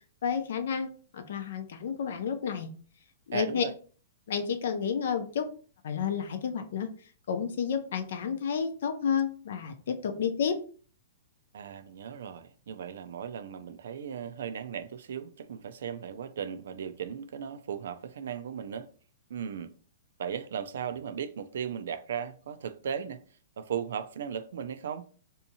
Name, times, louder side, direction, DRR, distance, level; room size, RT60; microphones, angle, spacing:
voice 1, 0.2-2.7 3.3-3.6 4.3-5.5 5.8-6.9 7.3-10.6, left 7 dB, 70° left, 0.6 m, -31 dB
voice 2, 3.3-3.7 11.5-18.9 19.3-19.7 20.2-23.2 23.6-25.1, right 8 dB, 75° right, 0.4 m, -37 dB
3.5 x 2.7 x 2.8 m
hypercardioid pair, 145°, 0 cm